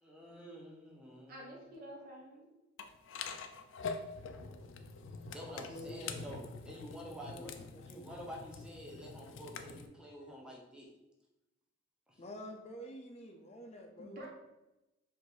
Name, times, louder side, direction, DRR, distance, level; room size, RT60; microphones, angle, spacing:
voice 1, 0.0-1.5 5.3-7.5 7.9-10.9 12.1-12.2, equal, 5° right, -3 dB, 0.8 m, -48 dB
voice 2, 1.3-2.5 14.0-14.3, equal, 50° right, -2 dB, 1.1 m, -49 dB
sound 1, 2.8-9.9, left 5 dB, 90° left, 0.4 m, -45 dB
voice 3, 5.7-6.2 7.3-8.0 12.2-14.2, equal, 35° left, 3 dB, 0.5 m, -48 dB
4.8 x 2.6 x 3.9 m, 0.96 s
head